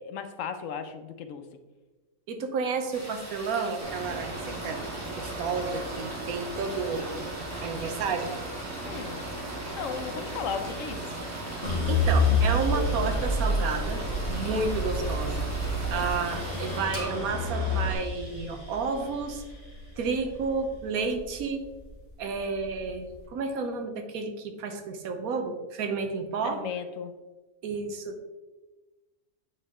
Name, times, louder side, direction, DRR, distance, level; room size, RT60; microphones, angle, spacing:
voice 1, 0.0-1.4 8.8-9.2 9.7-11.1 15.9-16.1 26.5-27.1, left 6 dB, 70° left, 8 dB, 0.9 m, -36 dB
voice 2, 2.3-4.8 5.2-7.2 7.6-8.3 11.9-14.0 14.3-19.4 20.0-21.6 22.2-26.6 27.6-28.2, right 4 dB, 80° right, 6 dB, 1.3 m, -31 dB
sound 1, 2.9-16.8, right 1 dB, 10° right, 1.4 m, -43 dB
Mechanical fan, 3.8-17.9, right 1 dB, 50° right, 1.3 m, -37 dB
sound 2, 11.6-21.8 22.3-23.1, left 1 dB, 40° left, 2.3 m, -29 dB
9.1 x 4.3 x 3.6 m, 1.2 s
omnidirectional pair, 1.5 m